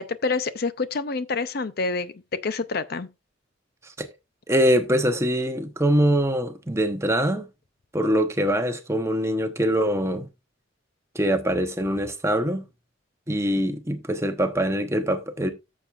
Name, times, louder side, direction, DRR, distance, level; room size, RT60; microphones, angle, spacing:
voice 1, 0.0-3.1, left 4 dB, 50° left, 0.5 m, -27 dB
voice 2, 4.5-7.5 7.9-10.3 11.1-12.6 13.3-15.5, equal, 15° right, 0.9 m, -23 dB
14.0 x 7.2 x 2.4 m
head